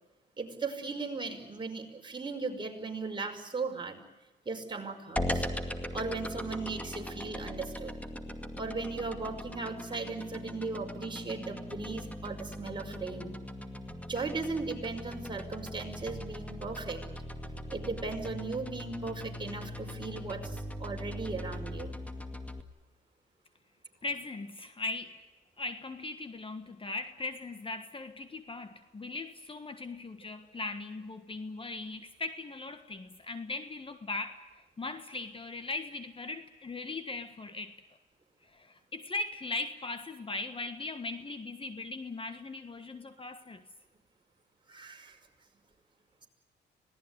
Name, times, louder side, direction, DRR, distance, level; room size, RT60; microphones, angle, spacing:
voice 1, 0.4-4.0 4.5-5.5 5.9-7.9 8.6-13.3 14.1-17.0 17.7-22.0 44.7-45.2, right 3 dB, 25° right, 2 dB, 5.4 m, -37 dB
sound 1, 5.2-22.6, left 1 dB, 5° left, 2.3 m, -40 dB
voice 2, 24.0-25.2 25.6-37.7 38.4-43.6, left 3 dB, 25° left, 10 dB, 1.5 m, -39 dB
26.0 x 18.5 x 9.7 m, 1.1 s
cardioid pair, 90°, 20 cm